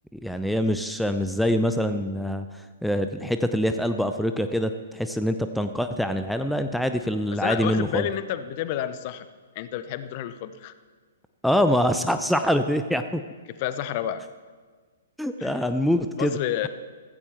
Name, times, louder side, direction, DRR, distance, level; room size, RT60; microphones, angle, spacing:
voice 1, 0.1-2.5 2.8-8.1 11.4-13.2 15.2-16.3, equal, ahead, 8 dB, 0.5 m, -24 dB
voice 2, 7.4-9.3 9.5-10.7 13.6-14.2 15.4-15.6 16.2-16.7, left 11 dB, 40° left, 13 dB, 0.7 m, -30 dB
15.5 x 15.0 x 3.4 m, 1.5 s
figure-of-eight pair, 115°, 0 cm